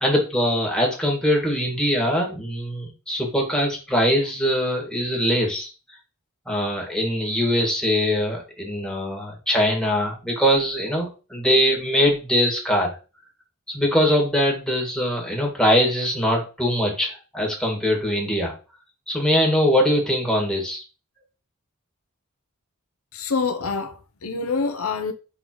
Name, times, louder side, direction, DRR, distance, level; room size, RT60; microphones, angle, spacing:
voice 1, 0.0-5.7 6.5-13.0 13.7-18.5 19.1-20.8, equal, 5° left, 2.0 m, -22 dB
voice 2, 23.1-25.1, left 4 dB, 80° left, 0.8 m, -26 dB
5.6 x 3.9 x 4.6 m
head